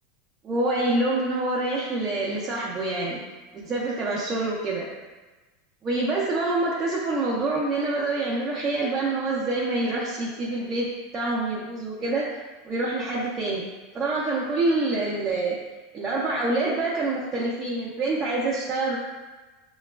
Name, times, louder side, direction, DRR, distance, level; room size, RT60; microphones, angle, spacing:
voice 1, 0.4-3.2 3.5-4.9 5.8-12.3 12.6-13.7 13.9-15.6 15.9-19.0, right 2 dB, 20° right, -7 dB, 0.5 m, -26 dB
5.7 x 2.3 x 2.3 m, 1.2 s
supercardioid pair, 155°, 0 cm